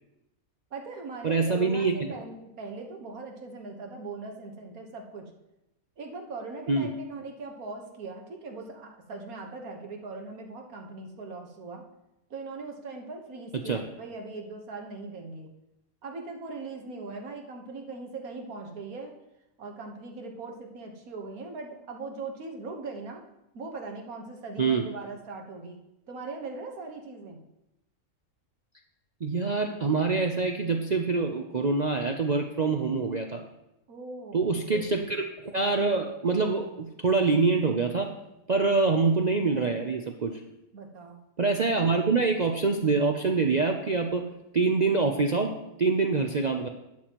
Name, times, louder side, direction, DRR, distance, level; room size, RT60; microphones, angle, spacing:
voice 1, 0.7-5.3 6.0-11.8 12.3-15.5 16.0-19.2 19.6-23.2 23.5-25.8 26.1-27.4 33.9-34.5 40.7-41.2, right 3 dB, 75° right, 2 dB, 1.7 m, -40 dB
voice 2, 1.2-1.9 6.7-6.9 13.6-13.8 24.6-24.9 29.2-33.4 34.3-38.1 38.5-40.4 41.4-44.2 44.5-46.7, right 4 dB, 50° right, 3 dB, 0.5 m, -25 dB
11.5 x 9.1 x 3.0 m, 0.90 s
omnidirectional pair, 1.5 m